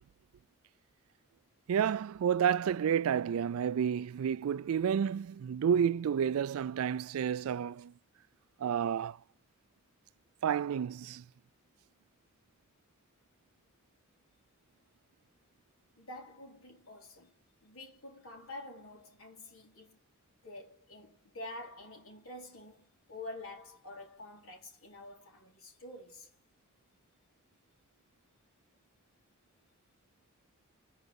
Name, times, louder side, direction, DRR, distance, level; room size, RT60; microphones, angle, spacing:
voice 1, 1.7-7.9 8.6-9.2 10.4-11.2, right 8 dB, 80° right, 0.3 m, -30 dB
voice 2, 16.0-17.3 17.6-20.0 20.4-26.3, left 2 dB, 80° left, 3.7 m, -48 dB
5.9 x 4.9 x 5.3 m
head